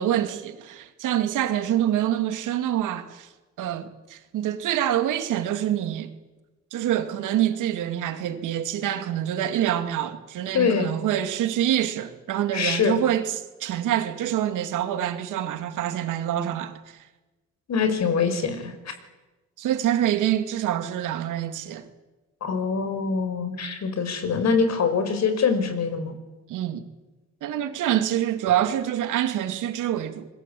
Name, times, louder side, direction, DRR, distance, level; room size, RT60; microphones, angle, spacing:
voice 1, 0.0-3.3 3.6-6.1 6.7-17.0 19.6-21.9 26.5-26.8 27.4-30.3, right 11 dB, 85° right, 2.6 m, -26 dB
voice 2, 10.5-10.9 12.5-13.0 17.7-18.7 22.4-26.1, left 5 dB, 60° left, 5.7 m, -24 dB
28.0 x 21.5 x 8.6 m
cardioid pair, 90°, 30 cm